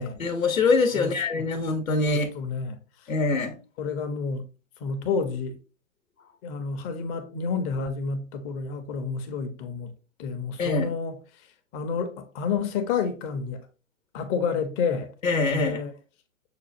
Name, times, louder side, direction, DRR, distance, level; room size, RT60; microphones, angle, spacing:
voice 1, 0.2-2.3 3.1-3.6 10.6-10.9 15.2-15.8, left 3 dB, 90° left, 0.8 m, -24 dB
voice 2, 1.0-1.4 2.0-2.8 3.8-4.4 4.8-5.6 6.4-9.9 10.2-11.2 11.7-13.6 14.1-15.1 15.5-15.9, left 5 dB, 30° left, 0.6 m, -29 dB
6.7 x 2.3 x 2.5 m
hypercardioid pair, 120°, 40 cm